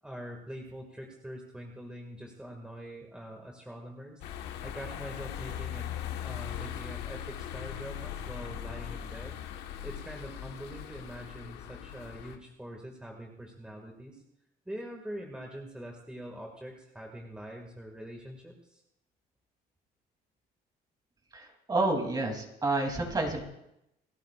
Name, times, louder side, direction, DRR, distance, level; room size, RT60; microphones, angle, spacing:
voice 1, 0.0-4.2 4.6-5.9 6.2-9.4 9.8-14.2 14.7-18.8, equal, 5° right, 0 dB, 2.1 m, -44 dB
sound 1, 4.2-12.4, left 10 dB, 90° left, 1.4 m, -39 dB
voice 2, 21.3-23.4, right 2 dB, 25° right, 2 dB, 3.2 m, -29 dB
29.0 x 13.0 x 2.5 m, 0.83 s
cardioid pair, 110°, 17 cm